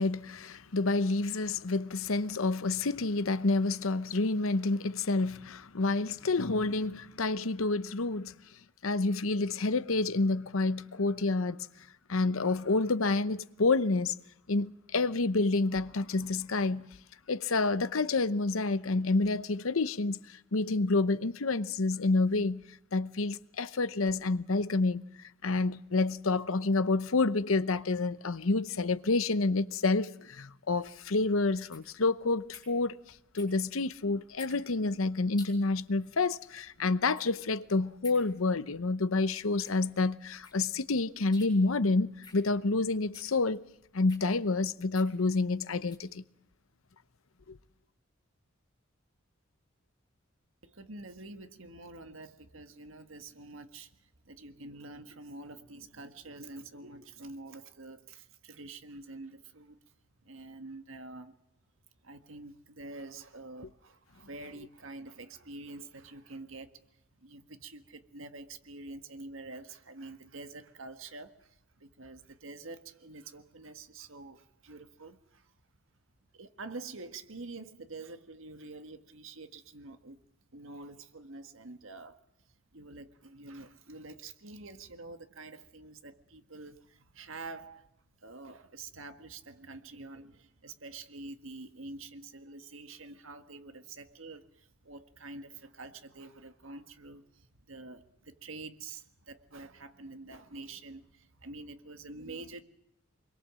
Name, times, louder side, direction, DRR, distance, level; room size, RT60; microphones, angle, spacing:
voice 1, 0.0-8.3 8.8-11.6 12.1-14.1 14.5-16.9 17.3-22.6 22.9-33.0 33.3-43.6 43.9-46.2 47.5-47.6, left 3 dB, 85° left, 0.9 m, -29 dB
sound 1, 30.7-46.1, left 5 dB, 20° left, 7.0 m, -55 dB
voice 2, 50.6-59.8 60.2-61.4 62.0-75.5 76.3-80.2 80.5-87.9 88.2-102.6, right 3 dB, 75° right, 1.7 m, -47 dB
25.5 x 22.5 x 7.6 m
head